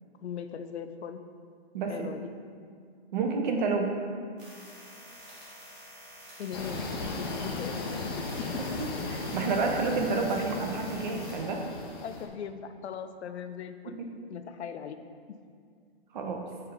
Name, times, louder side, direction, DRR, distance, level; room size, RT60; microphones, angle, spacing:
voice 1, 0.2-1.2 1.9-2.3 6.4-6.8 7.2-8.5 12.0-14.0 14.3-15.0 15.3-15.4, left 8 dB, 90° left, 9 dB, 0.5 m, -39 dB
voice 2, 1.7-2.1 3.1-4.0 8.6-11.6 16.1-16.4, right 4 dB, 45° right, 3 dB, 0.7 m, -30 dB
sound 1, 4.4-11.4, equal, 20° right, 1.2 m, -49 dB
sound 2, 6.5-12.3, left 3 dB, 25° left, 0.4 m, -36 dB
7.6 x 3.3 x 3.8 m, 2.2 s
hypercardioid pair, 155°, 32 cm